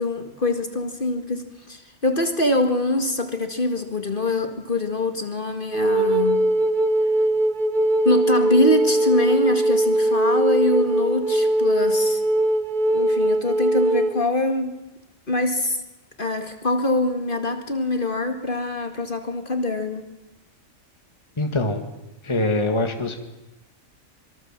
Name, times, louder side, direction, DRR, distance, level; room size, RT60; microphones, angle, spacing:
voice 1, 0.0-6.4 8.0-12.2 12.9-14.7 15.3-15.8 16.2-20.0, left 2 dB, 40° left, 6 dB, 2.3 m, -24 dB
Wind instrument woodwind instrument, 5.7-14.2, right 1 dB, 35° right, 1.5 m, -20 dB
voice 2, 21.4-21.9 22.2-23.2, left 2 dB, 20° left, 5 dB, 2.0 m, -23 dB
26.5 x 23.5 x 7.5 m, 0.99 s
omnidirectional pair, 1.4 m